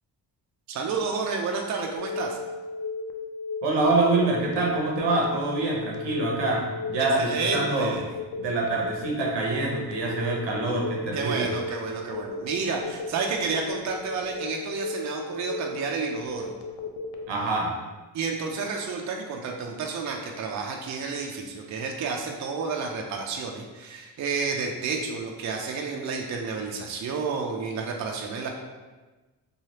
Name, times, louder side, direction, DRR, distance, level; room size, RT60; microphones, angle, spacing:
voice 1, 0.7-2.4 7.2-8.0 11.1-16.5 18.1-28.5, right 4 dB, 40° right, 2 dB, 0.5 m, -30 dB
Telephone, 2.0-17.2, left 3 dB, 65° left, 0.5 m, -35 dB
voice 2, 3.6-7.9 8.4-11.5 17.3-17.7, right 2 dB, 85° right, -2 dB, 0.8 m, -25 dB
3.1 x 2.3 x 2.8 m, 1.2 s
cardioid pair, 75°, 42 cm